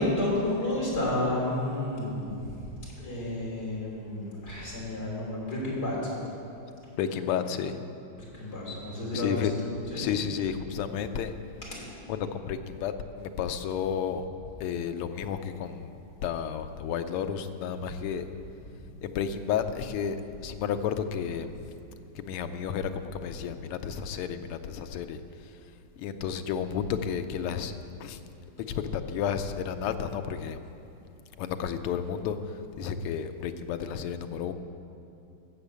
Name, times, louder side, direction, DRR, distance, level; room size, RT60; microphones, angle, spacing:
voice 1, 0.0-2.7 3.0-6.0 8.3-9.5 9.9-10.1 11.7-11.9, left 1 dB, 45° left, -5 dB, 3.8 m, -31 dB
voice 2, 7.0-7.8 9.1-9.5 9.9-11.3 12.1-12.9 13.2-14.2 14.6-18.2 19.0-21.5 22.1-25.5 26.0-27.7 28.0-28.2 28.7-30.6 31.4-34.5, left 8 dB, 90° left, 9 dB, 1.6 m, -32 dB
12.0 x 7.3 x 8.0 m, 2.7 s
omnidirectional pair, 2.4 m